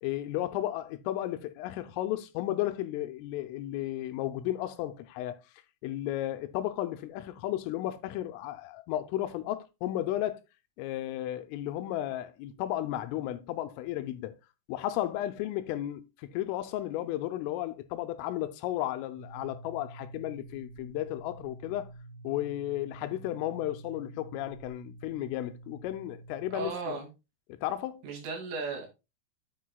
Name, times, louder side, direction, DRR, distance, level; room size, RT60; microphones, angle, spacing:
voice 1, 0.0-5.4 5.8-10.4 10.8-14.4 14.7-21.9 22.2-27.0 27.6-28.1, left 13 dB, 85° left, 3.2 m, -34 dB
sound 1, 19.2-26.7, right 2 dB, 5° right, 1.8 m, -48 dB
voice 2, 26.5-27.1 28.0-28.9, right 4 dB, 75° right, 4.8 m, -35 dB
9.3 x 8.8 x 2.2 m
omnidirectional pair, 5.8 m